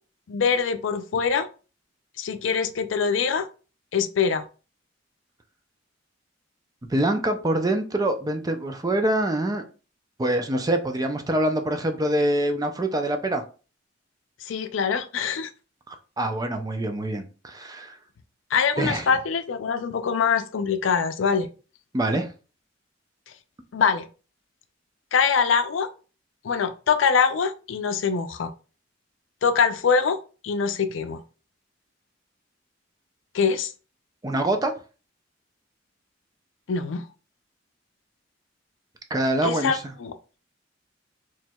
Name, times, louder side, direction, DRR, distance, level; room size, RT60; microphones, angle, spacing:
voice 1, 0.3-1.5 2.2-3.5 3.9-4.4 14.5-15.5 18.5-21.5 23.7-24.1 25.1-25.9 26.4-28.5 29.4-30.2 30.4-31.2 33.3-33.7 36.7-37.1 39.4-40.1, left 6 dB, 90° left, 0.5 m, -23 dB
voice 2, 6.9-9.6 10.2-13.4 15.9-18.0 18.8-19.1 21.9-22.3 34.2-34.7 39.1-39.9, right 1 dB, 20° right, 0.5 m, -25 dB
4.4 x 3.1 x 2.3 m
head